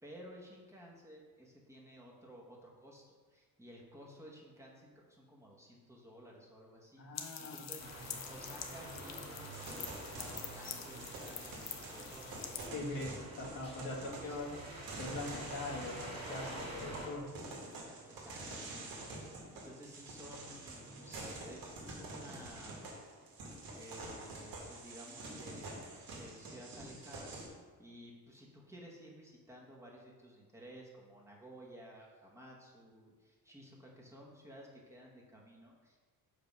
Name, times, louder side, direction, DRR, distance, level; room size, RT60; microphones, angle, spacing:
voice 1, 0.0-13.1 13.8-14.7 18.1-22.8 23.7-25.8 26.1-27.4 27.8-36.0, equal, 10° right, -4 dB, 1.1 m, -54 dB
voice 2, 7.0-7.7 8.1-8.2 12.7-14.6 15.0-17.3, left 2 dB, 70° left, -2 dB, 1.6 m, -42 dB
sound 1, 7.1-12.7, left 8 dB, 50° left, 0.7 m, -46 dB
sound 2, 7.8-17.1, right 1 dB, 45° right, 2.1 m, -48 dB
sound 3, 9.5-27.5, right 2 dB, 85° right, 1.9 m, -48 dB
6.3 x 5.1 x 5.3 m, 1.4 s
cardioid pair, 155°, 34 cm